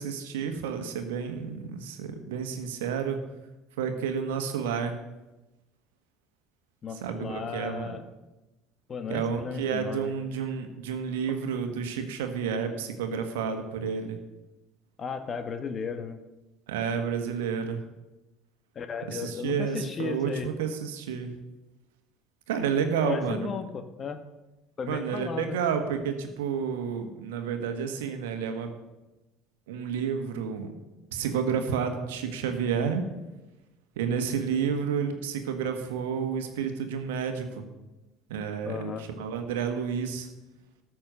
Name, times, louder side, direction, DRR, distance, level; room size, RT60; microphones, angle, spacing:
voice 1, 0.0-3.2 3.8-5.0 7.0-7.9 9.1-14.2 16.7-17.8 19.1-21.3 22.5-23.5 24.8-28.7 29.7-30.7 31.1-33.0 34.0-37.7 38.3-40.3, right 6 dB, 80° right, 6 dB, 1.4 m, -30 dB
voice 2, 6.8-8.0 8.9-10.1 15.0-16.2 18.7-20.5 23.1-24.2 24.8-25.5 38.6-39.0, left 5 dB, 40° left, 9 dB, 1.3 m, -35 dB
13.5 x 6.3 x 6.5 m, 1.0 s
hypercardioid pair, 70°, 0 cm